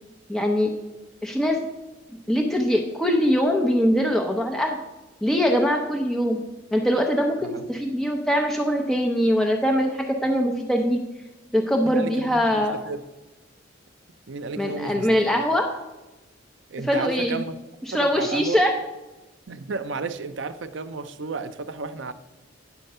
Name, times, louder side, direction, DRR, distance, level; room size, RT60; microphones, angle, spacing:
voice 1, 0.3-0.7 1.2-1.6 2.3-4.8 5.2-6.4 6.7-11.0 11.5-12.8 14.6-15.7 16.8-17.4 17.9-18.7, equal, ahead, 0.6 m, -22 dB
voice 2, 11.8-13.0 14.3-15.2 16.7-17.6 17.9-18.6 19.5-22.1, right 4 dB, 75° right, 0.6 m, -33 dB
9.4 x 4.5 x 6.6 m
head